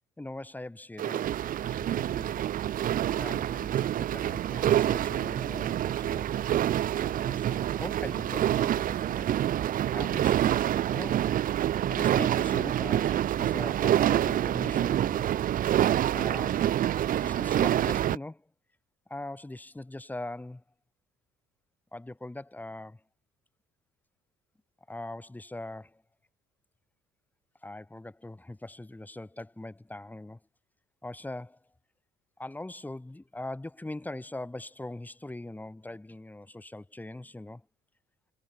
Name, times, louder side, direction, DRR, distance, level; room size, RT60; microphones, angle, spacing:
voice 1, 0.2-2.4 3.2-6.4 6.8-9.3 9.9-10.5 10.8-11.3 11.9-15.3 16.1-16.6 17.1-18.5 19.1-20.6 21.9-23.0 24.9-26.0 27.6-30.4 31.0-31.6 32.4-37.6, left 2 dB, 10° left, 4.2 m, -41 dB
sound 1, 1.0-18.2, right 11 dB, 55° right, 1.0 m, -27 dB
cardioid pair, 110°, 17 cm